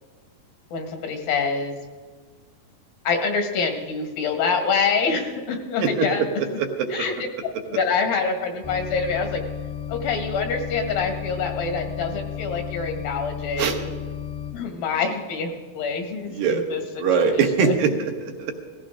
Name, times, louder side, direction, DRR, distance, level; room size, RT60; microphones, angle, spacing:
voice 1, 0.7-1.8 3.0-6.3 6.9-7.1 7.7-9.4 9.9-13.9 14.5-17.8, left 5 dB, 85° left, 5 dB, 3.3 m, -26 dB
voice 2, 6.4-7.0 13.6-13.8 16.3-16.6 17.0-18.5, right 6 dB, 80° right, 3 dB, 3.0 m, -22 dB
sound 1, 8.6-14.5, left 9 dB, 45° left, 0.7 m, -33 dB
18.5 x 15.0 x 3.7 m, 1.5 s
omnidirectional pair, 4.0 m